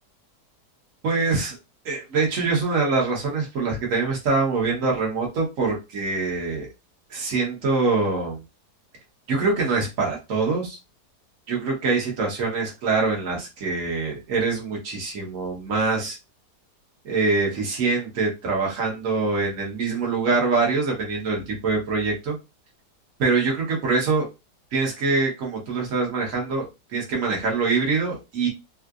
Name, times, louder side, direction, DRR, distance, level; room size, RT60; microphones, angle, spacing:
voice 1, 1.0-1.6 1.8-6.7 7.1-8.4 9.3-10.8 11.5-16.2 17.0-22.3 23.2-24.3 24.7-28.5, right 4 dB, 50° right, -2 dB, 1.4 m, -24 dB
3.7 x 2.4 x 2.4 m, 0.26 s
omnidirectional pair, 1.8 m